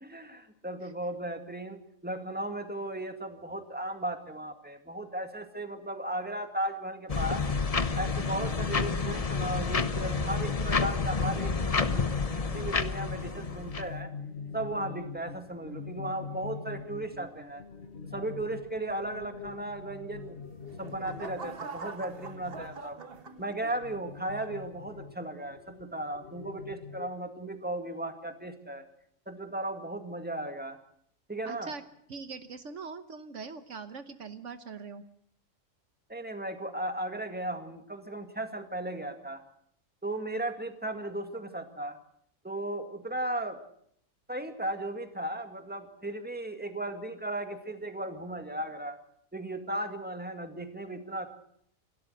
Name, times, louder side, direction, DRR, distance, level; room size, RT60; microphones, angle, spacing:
voice 1, 0.0-7.4 8.0-12.1 12.5-14.1 14.5-17.6 18.1-20.4 20.8-23.0 23.4-28.8 29.3-30.8 31.3-31.7 36.1-39.4 40.0-42.0 42.4-43.6 44.3-49.0 49.3-51.3, right 1 dB, 5° right, 6 dB, 2.0 m, -36 dB
sound 1, 7.1-13.9, left 4 dB, 30° left, 0.9 m, -29 dB
sound 2, 10.9-27.1, left 5 dB, 55° left, 1.7 m, -44 dB
sound 3, 20.3-23.9 24.5-24.8, right 4 dB, 50° right, 1.5 m, -44 dB
voice 2, 31.4-31.8 32.1-35.0, right 4 dB, 70° right, 10 dB, 1.3 m, -42 dB
28.0 x 12.5 x 7.8 m, 0.68 s
omnidirectional pair, 1.4 m